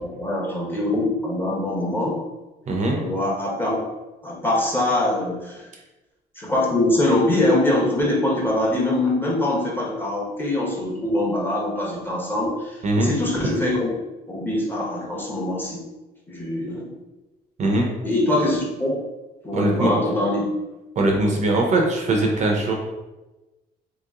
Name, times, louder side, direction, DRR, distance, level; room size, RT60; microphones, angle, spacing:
voice 1, 0.2-2.2 2.9-3.8 4.2-5.6 6.4-13.9 14.3-15.8 16.3-16.9 18.0-19.1 19.4-20.5, left 1 dB, 10° left, -4 dB, 1.1 m, -23 dB
voice 2, 2.7-3.0 12.8-13.1 17.6-17.9 19.5-19.9 21.0-22.7, right 2 dB, 45° right, 1 dB, 0.7 m, -21 dB
3.0 x 2.9 x 3.7 m, 1.1 s
cardioid pair, 110°, 17 cm